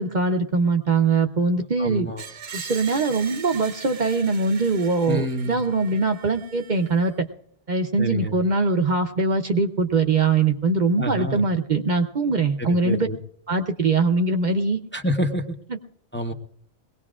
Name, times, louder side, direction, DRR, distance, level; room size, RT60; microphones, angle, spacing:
voice 1, 0.0-2.1 2.5-7.3 7.7-13.1 13.5-14.8 15.7-15.8, right 3 dB, 50° right, 5 dB, 0.9 m, -22 dB
voice 2, 1.8-2.2 5.1-5.6 8.0-8.4 11.0-11.4 12.7-13.2 14.9-15.5 16.1-16.3, equal, 10° left, 3 dB, 0.8 m, -27 dB
Screech, 2.2-7.1, right 7 dB, 75° right, 1.3 m, -40 dB
22.0 x 18.0 x 2.4 m, 0.65 s
omnidirectional pair, 1.1 m